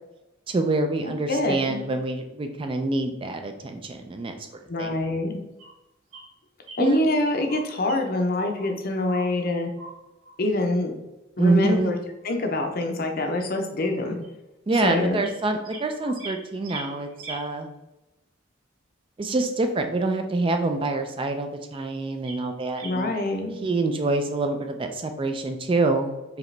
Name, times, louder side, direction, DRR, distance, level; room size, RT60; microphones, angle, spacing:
voice 1, 0.5-4.3 4.8-5.0 6.8-7.0 11.4-11.9 14.7-17.7 19.2-23.1 23.6-26.2, right 2 dB, 25° right, 6 dB, 0.3 m, -26 dB
voice 2, 1.3-1.8 4.7-5.3 6.8-9.7 10.4-10.9 11.4-12.0 12.2-14.2 14.7-15.2 22.8-23.6, left 2 dB, 45° left, 4 dB, 0.6 m, -25 dB
sound 1, 5.6-5.7 6.1-6.2 6.7-7.0 7.2-8.1 8.4-8.8 9.0-9.3 9.8-10.0 10.2-10.4 12.2-12.3 14.2-14.3 14.7-14.8 15.2-16.3 16.6-17.4 20.2-20.3 21.7-21.8 22.2-22.4 22.7-22.9, right 2 dB, 70° right, 1.5 m, -41 dB
4.9 x 2.9 x 3.2 m, 0.97 s
head